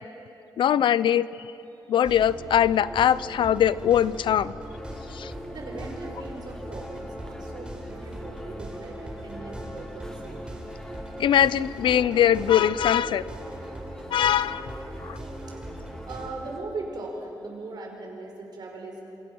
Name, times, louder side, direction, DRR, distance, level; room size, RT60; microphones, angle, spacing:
voice 1, 0.6-1.3 1.9-4.5 5.1-5.3 11.2-13.2 14.1-14.7 15.0-15.2, left 10 dB, 80° left, 17 dB, 0.6 m, -21 dB
sound 1, 2.0-16.3, right 1 dB, 15° right, 4.2 m, -40 dB
sound 2, 4.7-16.6, equal, 5° left, 1.7 m, -44 dB
voice 2, 5.5-10.5 15.5-15.6 16.0-19.1, right 3 dB, 60° right, 1 dB, 5.5 m, -39 dB
28.0 x 26.0 x 6.3 m, 2.8 s
wide cardioid pair, 135°, 8 cm